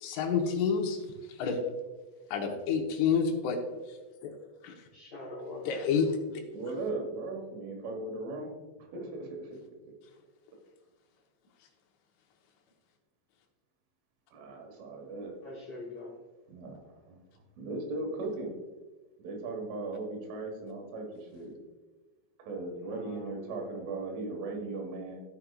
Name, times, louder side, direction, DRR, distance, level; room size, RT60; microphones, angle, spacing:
voice 1, 0.0-1.0 1.4-1.6 2.3-3.6 4.2-4.3 4.6-4.7 5.7-6.2, left 6 dB, 80° left, 1 dB, 3.7 m, -28 dB
voice 2, 4.9-5.9 15.4-16.2 22.9-23.7, left 2 dB, 55° left, -4 dB, 2.1 m, -44 dB
voice 3, 6.5-9.5 14.3-15.4 16.5-17.2 17.6-18.5 19.2-21.6 22.4-25.2, right 2 dB, 75° right, 1 dB, 4.0 m, -38 dB
14.5 x 6.5 x 2.4 m, 1.3 s
omnidirectional pair, 5.6 m